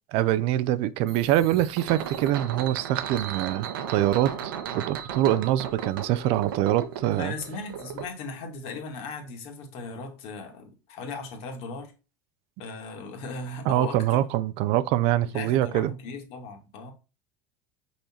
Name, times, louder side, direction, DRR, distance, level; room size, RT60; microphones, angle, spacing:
voice 1, 0.1-7.3 13.7-15.9, right 13 dB, 60° right, 0.5 m, -24 dB
sound 1, 1.1-8.1, right 8 dB, 85° right, 1.0 m, -36 dB
voice 2, 7.2-11.9 12.6-14.2 15.3-16.9, left 3 dB, 60° left, 2.0 m, -37 dB
5.6 x 4.4 x 4.3 m
supercardioid pair, 100°, 11 cm